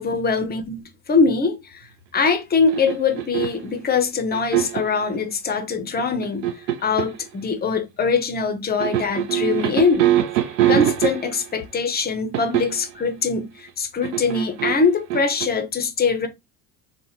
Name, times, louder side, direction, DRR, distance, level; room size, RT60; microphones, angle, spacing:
voice 1, 0.0-1.9 2.1-6.5 6.8-10.1 10.7-16.3, left 4 dB, 20° left, 0.6 m, -22 dB
sound 1, 2.7-3.7 4.3-5.0 6.0-7.2 8.8-11.5 12.3-12.9 14.0-15.5, right 12 dB, 75° right, 0.6 m, -23 dB
3.6 x 2.1 x 2.9 m
figure-of-eight pair, 65°, 49 cm